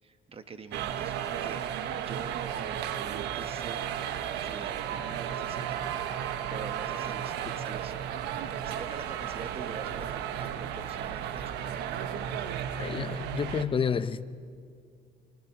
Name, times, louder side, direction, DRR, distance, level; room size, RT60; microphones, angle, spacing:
voice 1, 0.0-1.1 1.4-1.6 1.9-5.8 6.5-8.0 8.6-11.9, right 5 dB, 35° right, 1.3 m, -45 dB
sound 1, 0.7-13.6, right 9 dB, 85° right, 1.1 m, -34 dB
voice 2, 12.8-14.2, left 6 dB, 30° left, 0.8 m, -29 dB
30.0 x 24.0 x 4.6 m
cardioid pair, 110°, 17 cm